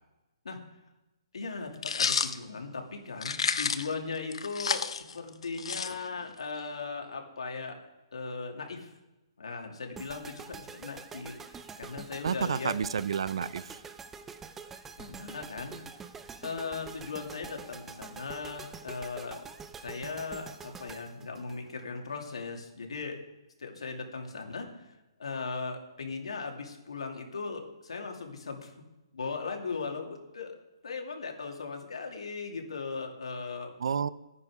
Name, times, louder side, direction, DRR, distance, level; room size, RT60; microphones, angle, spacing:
voice 1, 1.3-8.9 9.4-12.7 15.0-16.1 16.4-19.4 19.7-23.2 23.6-24.8 25.2-28.7 29.1-30.6 30.8-33.7, left 4 dB, 90° left, 2 dB, 2.6 m, -38 dB
sound 1, 1.8-2.3 3.2-3.9 4.3-6.3, left 6 dB, 75° left, 0.8 m, -30 dB
sound 2, 9.9-22.1, right 5 dB, 10° right, 0.5 m, -46 dB
voice 2, 12.2-13.8 33.8-34.1, right 7 dB, 65° right, 17 dB, 0.6 m, -30 dB
11.5 x 9.8 x 4.9 m, 1.0 s
hypercardioid pair, 165°, 3 cm